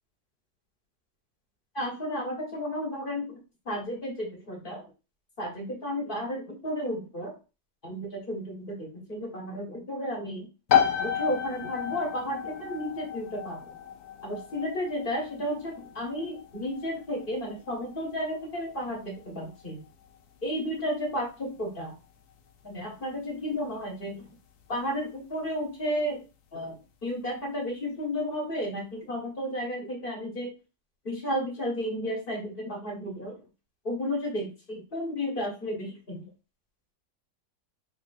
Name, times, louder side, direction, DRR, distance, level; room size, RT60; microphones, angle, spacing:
voice 1, 1.7-3.3 3.6-4.8 5.4-7.3 7.8-10.5 11.0-13.8 14.2-19.8 20.4-22.0 22.6-24.3 24.7-26.2 26.5-30.5 31.0-33.3 33.8-36.3, equal, 35° left, 0 dB, 1.1 m, -33 dB
sound 1, 10.7-25.2, left 9 dB, 70° left, 1.1 m, -33 dB
3.1 x 2.7 x 4.0 m, 0.32 s
omnidirectional pair, 1.9 m